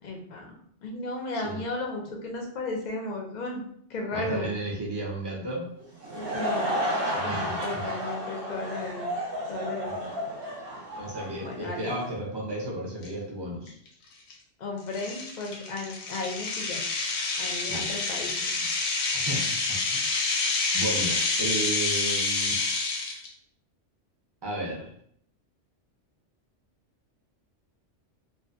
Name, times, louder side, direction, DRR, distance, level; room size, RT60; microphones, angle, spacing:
voice 1, 0.0-3.6 3.9-4.5 6.1-6.8 7.2-9.1 9.5-10.1 11.4-11.9 14.6-16.8 17.4-18.6, left 2 dB, 55° left, 1 dB, 0.5 m, -35 dB
voice 2, 4.1-5.7 7.1-7.8 11.0-13.8 17.6-17.9 19.0-20.1 20.7-22.6 24.4-24.9, right 1 dB, 30° right, -3 dB, 0.5 m, -34 dB
Laughter / Crowd, 5.8-12.1, equal, 55° right, 0.8 m, -32 dB
sound 1, 13.0-13.1 13.7-13.9 14.3-14.4 14.9-23.3, left 3 dB, 85° left, 0.9 m, -28 dB
2.5 x 2.2 x 2.5 m, 0.65 s
omnidirectional pair, 1.3 m